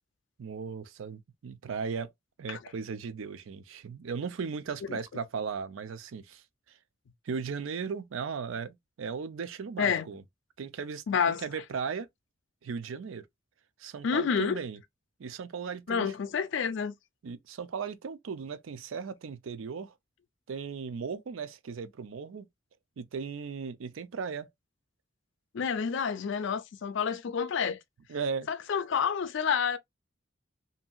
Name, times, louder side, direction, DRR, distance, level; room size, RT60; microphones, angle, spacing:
voice 1, 0.4-2.1 2.4-6.4 7.3-10.2 10.6-12.1 12.6-13.3 13.8-14.8 15.2-16.1 17.2-19.9 20.5-22.5 23.0-24.5 28.1-28.5, right 5 dB, 90° right, 0.4 m, -37 dB
voice 2, 11.1-11.5 14.0-14.6 15.9-16.9 25.5-27.8 28.5-29.8, left 6 dB, 65° left, 0.4 m, -29 dB
2.8 x 2.6 x 2.3 m
head